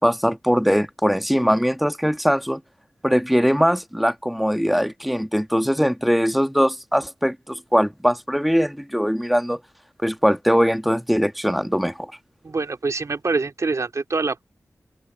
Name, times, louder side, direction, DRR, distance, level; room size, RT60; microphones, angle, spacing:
voice 1, 0.0-2.6 3.0-9.6 10.0-12.1, equal, ahead, 1.7 m, -21 dB
voice 2, 12.4-14.4, right 3 dB, 60° right, 3.3 m, -25 dB
open air
cardioid pair, 45°, 6 cm